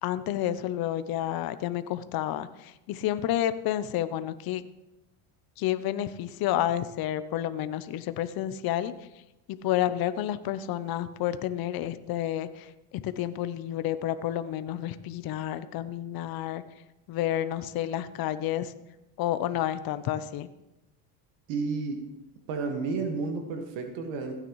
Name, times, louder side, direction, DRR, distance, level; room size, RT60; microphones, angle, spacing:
voice 1, 0.0-4.6 5.6-8.9 9.6-16.6 17.1-18.7 19.2-20.5, left 12 dB, 50° left, 13 dB, 0.8 m, -30 dB
voice 2, 21.5-22.0 22.5-24.3, right 4 dB, 70° right, 5 dB, 1.7 m, -31 dB
15.5 x 9.2 x 3.1 m, 0.95 s
supercardioid pair, 95°, 46 cm